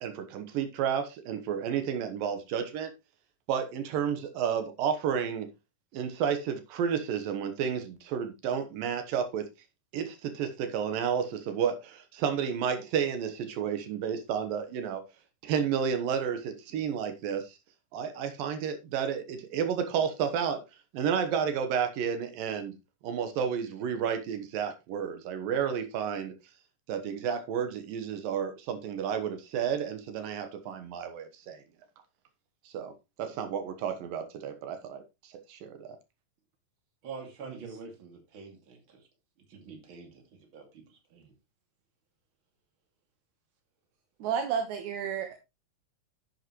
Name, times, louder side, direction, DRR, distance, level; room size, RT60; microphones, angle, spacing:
voice 1, 0.0-2.9 3.5-5.5 5.9-9.5 9.9-15.0 15.4-17.6 17.9-20.6 20.9-22.8 23.0-26.3 26.9-31.6 32.7-32.9 33.2-36.0, right 7 dB, 80° right, 2.9 m, -31 dB
voice 2, 37.0-39.0 39.5-41.3, right 5 dB, 40° right, 2.8 m, -46 dB
voice 3, 44.2-45.3, right 7 dB, 65° right, 2.3 m, -31 dB
11.5 x 8.1 x 3.1 m
omnidirectional pair, 4.0 m